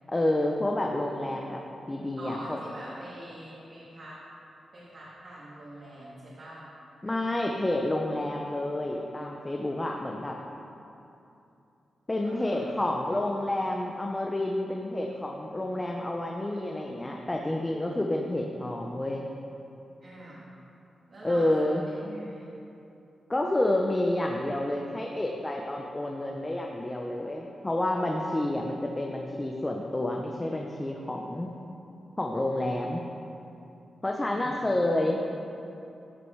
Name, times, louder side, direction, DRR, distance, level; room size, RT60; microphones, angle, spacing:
voice 1, 0.1-1.6 1.9-2.6 7.0-10.4 12.1-19.3 21.2-21.8 23.3-31.5 32.2-33.0 34.0-35.2, left 1 dB, 20° left, 1 dB, 0.8 m, -29 dB
voice 2, 2.2-4.2 4.7-6.7 12.2-12.9 20.0-20.5 21.1-22.6 34.3-35.1, right 1 dB, 55° right, -9 dB, 2.5 m, -44 dB
15.0 x 6.1 x 4.7 m, 2.8 s
cardioid pair, 90°, 0 cm